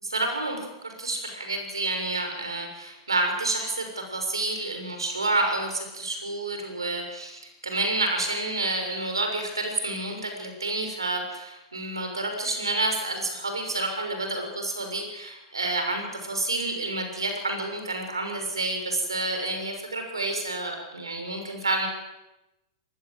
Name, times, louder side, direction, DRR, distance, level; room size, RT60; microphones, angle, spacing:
voice 1, 0.0-21.9, right 2 dB, 90° right, 4 dB, 6.5 m, -29 dB
24.0 x 19.5 x 7.9 m, 0.97 s
hypercardioid pair, 100°, 2 cm